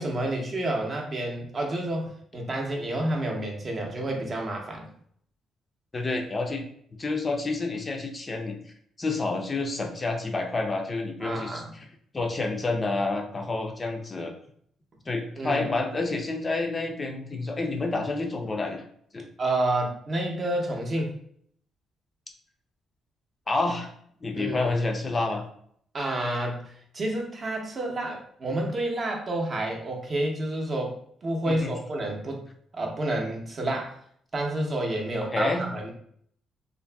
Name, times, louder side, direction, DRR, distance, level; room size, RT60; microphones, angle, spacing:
voice 1, 0.0-4.9 11.2-11.7 15.4-15.6 19.4-21.1 24.3-24.6 25.9-32.4 32.7-34.0 34.3-35.9, right 1 dB, 40° right, 1 dB, 0.6 m, -29 dB
voice 2, 5.9-6.6 7.0-8.6 9.0-11.6 12.1-14.3 15.1-18.8 19.1-19.2 23.5-23.9 24.2-25.4 31.5-31.7 35.3-35.6, left 3 dB, 30° left, 3 dB, 0.4 m, -29 dB
2.5 x 2.5 x 2.2 m, 0.64 s
cardioid pair, 90°, 0 cm